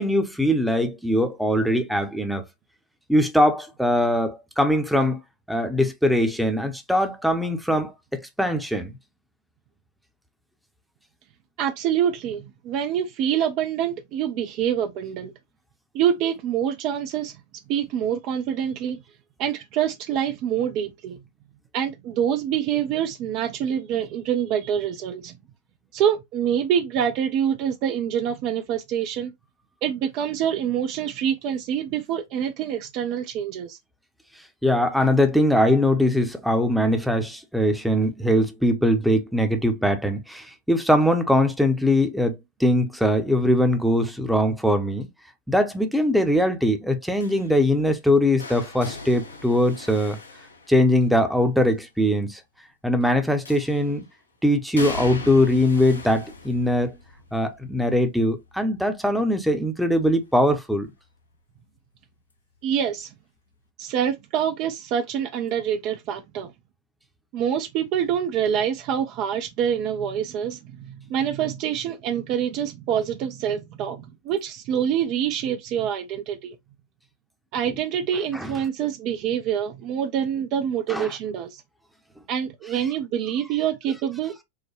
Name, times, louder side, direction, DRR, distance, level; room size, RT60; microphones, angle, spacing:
voice 1, 0.0-2.4 3.1-5.2 5.5-8.9 34.6-45.1 45.5-50.2 50.7-52.4 52.8-54.0 54.4-57.0 57.3-60.9 78.3-78.5 80.9-81.1, left 1 dB, ahead, 0.7 m, -21 dB
voice 2, 11.6-15.3 15.9-17.3 17.7-19.0 19.4-21.2 21.7-25.4 25.9-29.3 29.8-33.8 62.6-63.1 63.8-66.5 67.3-76.6 77.5-81.6 82.3-84.4, right 9 dB, 40° right, 0.4 m, -26 dB
sound 1, 47.2-51.2 53.4-54.0 54.8-60.6 60.9-61.3 62.6-62.7, left 3 dB, 75° left, 0.7 m, -40 dB
4.7 x 2.1 x 3.0 m
figure-of-eight pair, 90°, 0 cm